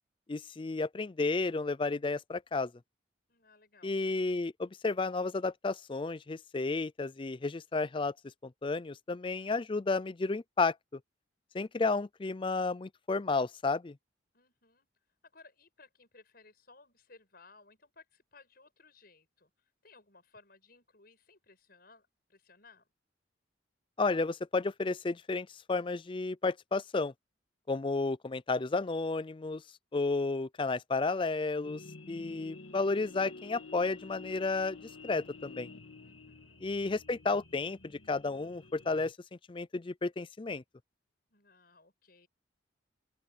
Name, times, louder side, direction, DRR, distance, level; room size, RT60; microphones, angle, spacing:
voice 1, 0.3-2.7 3.8-8.1 8.4-11.0 11.5-14.0 24.0-27.1 27.7-29.6 29.9-31.8 32.1-34.8 35.0-35.7 36.6-39.2 39.5-40.6, left 3 dB, 25° left, 0.4 m, -32 dB
voice 2, 3.3-4.0 14.3-14.9 15.3-19.5 19.8-22.9 36.0-36.6 41.3-42.3, left 3 dB, 50° left, 7.4 m, -60 dB
sound 1, 31.6-39.1, left 3 dB, 85° left, 2.7 m, -50 dB
open air
head